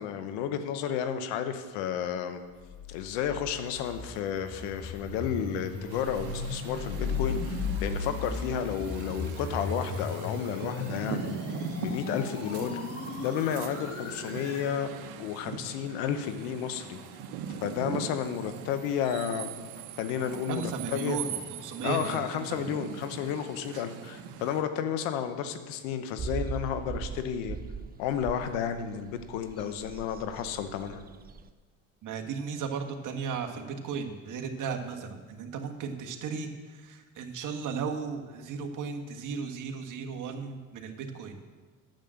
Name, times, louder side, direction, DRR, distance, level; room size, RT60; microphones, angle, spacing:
voice 1, 0.0-2.4 2.9-11.4 11.8-12.7 13.2-14.9 15.2-17.0 17.6-19.7 19.9-21.2 21.8-27.6 28.0-31.0, left 8 dB, 85° left, 9 dB, 1.1 m, -32 dB
sound 1, 2.6-14.7, left 4 dB, 35° left, 2.5 m, -36 dB
sound 2, 5.9-24.6, right 7 dB, 75° right, 1.2 m, -41 dB
voice 2, 20.5-22.8 23.7-23.8 32.0-41.4, right 6 dB, 50° right, 3 dB, 1.6 m, -35 dB
sound 3, 26.2-31.5, right 5 dB, 25° right, 0.5 m, -40 dB
9.2 x 7.6 x 7.6 m, 1.4 s
supercardioid pair, 85°, 38 cm